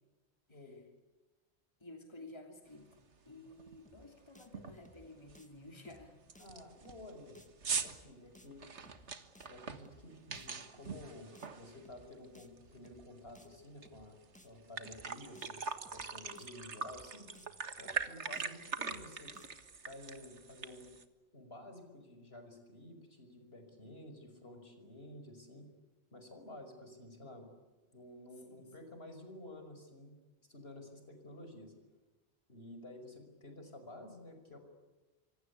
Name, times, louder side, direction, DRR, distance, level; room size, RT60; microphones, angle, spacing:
voice 1, 0.5-0.8 6.4-7.4 7.8-8.6 9.5-14.2 14.4-17.3 17.8-20.9 21.3-25.7 26.1-27.5 27.9-30.2 30.5-31.7 32.5-34.6, left 1 dB, 65° left, 6 dB, 5.9 m, -52 dB
voice 2, 1.8-6.2 28.5-28.7, left 2 dB, 25° left, 3 dB, 3.0 m, -53 dB
sound 1, 2.9-3.0 3.5-3.8 4.0-4.1 4.5-4.9 5.3-5.4 5.9-6.0 6.3-12.2 12.6-13.9 14.2-14.3 14.6-21.0, right 5 dB, 90° right, 1.9 m, -42 dB
sound 2, 3.9-4.1 4.4-4.5 4.8-5.1 5.3-5.5 5.9-6.1 6.4-6.5 6.8-7.1 7.4-7.5 7.9-8.1 8.3-8.5 8.8-9.1 9.4-9.5 9.9-10.1 10.4-10.5 10.8-11.1 11.4-11.5 11.9-12.1 12.3-12.5 12.8-13.1 13.4-13.5 13.9-14.1 14.3-14.5 14.8-15.1 15.4-15.5 15.9-16.1 16.4-16.5 16.8-17.1 17.3-17.5 17.9-18.1 18.4-18.5 18.8-19.1 19.3-19.5, equal, 5° left, 2.0 m, -61 dB
26.0 x 25.5 x 8.4 m, 1.2 s
omnidirectional pair, 1.1 m